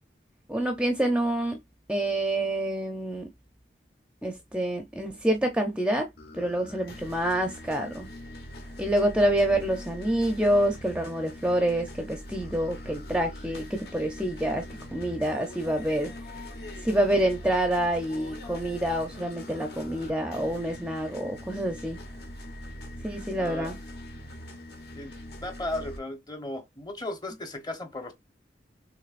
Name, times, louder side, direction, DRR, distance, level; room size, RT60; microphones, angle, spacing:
voice 1, 0.5-1.6 1.9-3.3 4.2-6.1 6.3-8.1 8.8-14.7 14.9-16.1 16.8-22.0 23.0-23.7, right 1 dB, 5° right, 0.5 m, -27 dB
sound 1, 6.2-26.0, left 1 dB, 65° left, 1.2 m, -42 dB
voice 2, 23.4-23.7 25.0-25.1 25.4-28.1, left 2 dB, 25° left, 0.9 m, -35 dB
6.3 x 3.1 x 2.5 m
head